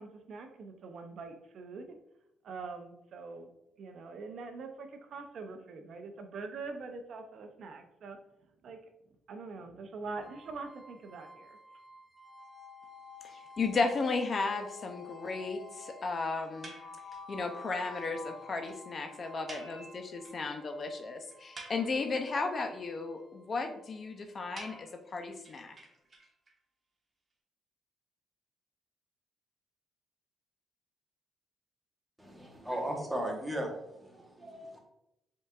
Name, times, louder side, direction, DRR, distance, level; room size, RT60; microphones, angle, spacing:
voice 1, 0.0-2.0 2.4-3.5 3.8-8.2 8.6-8.8 9.3-11.6, right 4 dB, 65° right, 6 dB, 0.5 m, -44 dB
sound 1, 10.2-25.1, left 3 dB, 20° left, 1.4 m, -51 dB
voice 2, 13.2-16.7 17.3-25.8, left 4 dB, 45° left, 6 dB, 0.5 m, -34 dB
sound 2, 16.6-17.3 17.7-17.8 18.0-18.1 18.4-18.5 18.6-18.8 19.5-20.5 20.8-20.9 21.3-22.3 24.6-26.5, right 2 dB, 35° right, 1.0 m, -50 dB
voice 3, 32.2-34.8, right 1 dB, 5° right, 0 dB, 1.1 m, -37 dB
5.2 x 3.7 x 2.4 m, 0.85 s
cardioid pair, 90°, 0 cm